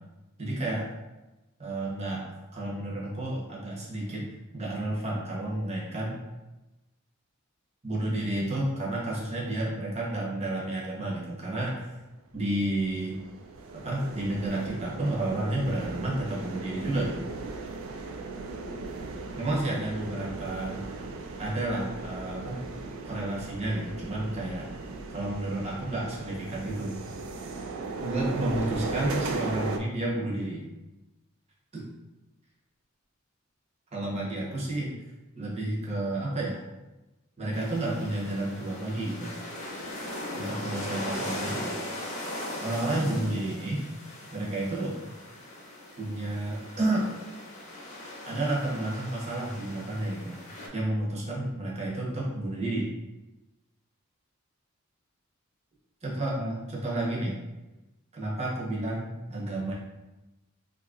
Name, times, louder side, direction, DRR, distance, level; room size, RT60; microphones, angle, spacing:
voice 1, 0.4-0.9 1.6-2.2 2.5-4.3 4.5-6.2 7.8-11.9 12.3-13.2 13.7-17.3 19.4-20.8 21.4-22.6 23.0-24.7 25.1-27.0 28.0-30.6 31.7-31.8 33.9-35.0 35.4-36.6 37.4-39.4 40.3-41.7 42.6-43.9 44.3-45.0 46.0-47.1 48.3-50.4 50.7-52.9 56.0-57.4 58.1-59.7, right 1 dB, 30° right, -4 dB, 0.8 m, -31 dB
sound 1, 12.5-29.8, right 3 dB, 70° right, 0.4 m, -37 dB
sound 2, 37.5-50.7, left 1 dB, 35° left, 0.6 m, -39 dB
2.8 x 2.5 x 3.7 m, 1.0 s
head